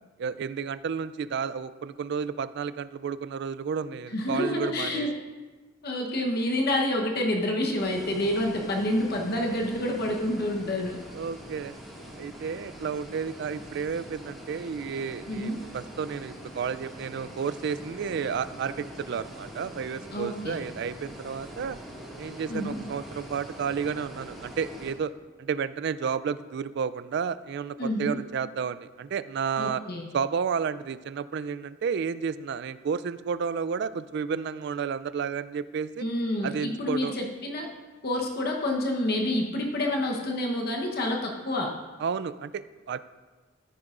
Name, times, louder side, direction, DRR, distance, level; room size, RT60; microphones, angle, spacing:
voice 1, 0.2-5.1 11.1-11.7 12.2-21.8 22.2-25.1 25.4-29.8 30.1-36.1 36.4-37.1 42.0-43.0, right 6 dB, 60° right, 15 dB, 0.3 m, -31 dB
voice 2, 4.1-5.1 5.8-11.0 15.3-15.6 20.1-20.6 22.5-22.8 27.8-28.2 29.6-30.1 36.0-37.7 38.0-41.7, left 1 dB, 50° left, 0 dB, 1.0 m, -28 dB
sound 1, 7.8-24.9, equal, ahead, 1.8 m, -44 dB
13.5 x 10.0 x 2.5 m, 1.3 s
head